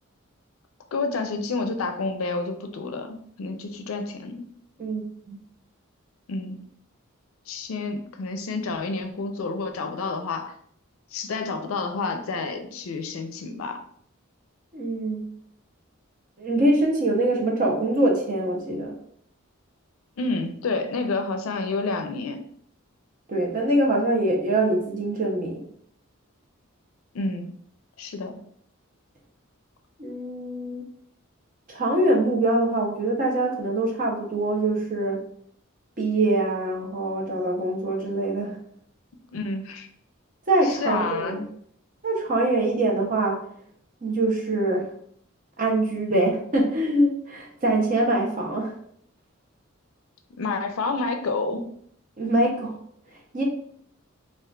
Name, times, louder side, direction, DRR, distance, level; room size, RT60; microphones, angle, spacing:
voice 1, 0.9-4.4 6.3-6.6 7.5-10.5 11.1-13.8 20.2-22.4 27.1-27.6 28.0-28.4 39.3-39.9 40.6-41.5 46.1-46.3 50.4-51.7, left 3 dB, 75° left, 6 dB, 0.4 m, -29 dB
voice 2, 4.8-5.4 14.7-15.3 16.4-18.9 23.3-25.6 30.0-30.8 31.7-35.2 36.0-38.6 40.5-41.4 42.0-43.4 44.0-44.9 45.6-48.7 52.2-52.8 53.3-53.4, right 1 dB, 40° right, 0 dB, 0.6 m, -24 dB
3.7 x 2.4 x 2.2 m, 0.65 s
head